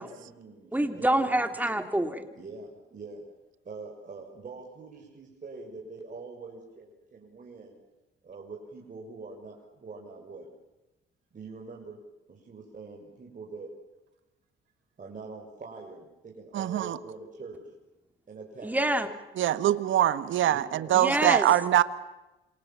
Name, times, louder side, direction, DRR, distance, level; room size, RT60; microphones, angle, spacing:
voice 1, 0.0-1.2 2.3-3.2 3.6-7.8 8.2-10.5 11.3-12.0 12.3-13.7 15.0-17.6 18.3-18.9 20.5-21.0, right 4 dB, 40° right, -1 dB, 6.6 m, -44 dB
voice 2, 0.7-2.3 18.6-19.1 20.9-21.5, right 1 dB, 10° right, 7 dB, 3.3 m, -26 dB
voice 3, 16.5-17.0 19.3-21.8, right 12 dB, 75° right, 13 dB, 1.5 m, -23 dB
28.0 x 27.5 x 7.5 m, 1.0 s
cardioid pair, 90°, 20 cm